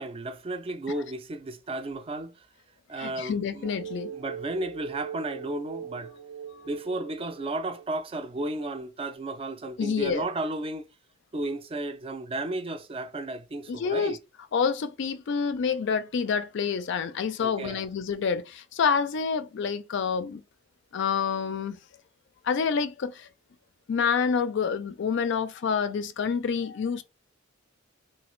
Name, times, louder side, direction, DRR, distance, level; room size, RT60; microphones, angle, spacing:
voice 1, 0.0-2.5 2.9-3.7 4.1-6.1 6.7-10.9 11.3-14.2 17.4-17.8, right 2 dB, 30° right, 0.4 m, -33 dB
voice 2, 3.0-4.1 9.8-10.3 13.7-14.2 14.5-20.4 20.9-21.8 22.4-23.3 23.9-27.0, left 6 dB, 65° left, 0.4 m, -28 dB
sound 1, 3.6-8.3, right 8 dB, 85° right, 0.5 m, -41 dB
3.2 x 2.3 x 3.0 m
head